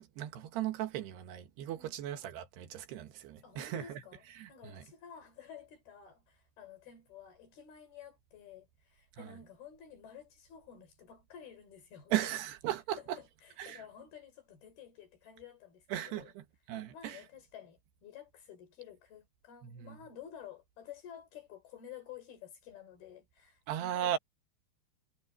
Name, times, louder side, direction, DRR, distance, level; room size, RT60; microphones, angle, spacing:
voice 1, 0.0-4.0 4.4-4.8 9.2-9.4 12.1-13.2 13.6-13.8 15.9-17.2 19.6-20.0 23.7-24.2, right 12 dB, 85° right, 3.7 m, -37 dB
voice 2, 3.4-4.2 4.5-12.1 13.0-16.3 16.9-24.2, left 8 dB, 65° left, 6.3 m, -52 dB
omnidirectional pair, 4.7 m